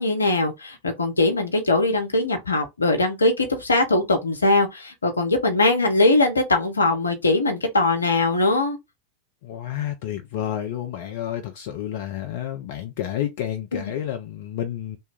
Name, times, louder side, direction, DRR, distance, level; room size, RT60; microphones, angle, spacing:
voice 1, 0.0-8.8 13.7-13.8, left 2 dB, 75° left, 0.8 m, -21 dB
voice 2, 9.4-15.0, left 11 dB, 50° left, 0.5 m, -30 dB
3.0 x 2.1 x 3.4 m
figure-of-eight pair, 90°, 0 cm